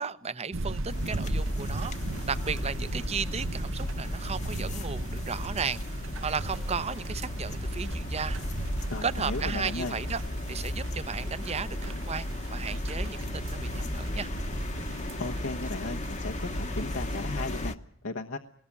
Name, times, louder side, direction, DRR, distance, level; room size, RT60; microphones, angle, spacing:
voice 1, 0.0-2.0 2.3-8.4 9.0-10.2 10.5-14.3, right 5 dB, 30° right, 15 dB, 0.8 m, -35 dB
sound 1, 0.5-17.7, right 2 dB, 70° right, 0.9 m, -38 dB
sound 2, 0.9-17.8, left 1 dB, 35° left, 1.0 m, -35 dB
voice 2, 8.9-10.0 15.2-17.8 18.0-18.4, left 3 dB, 85° left, 1 dB, 1.2 m, -35 dB
20.5 x 20.0 x 8.5 m, 0.63 s
head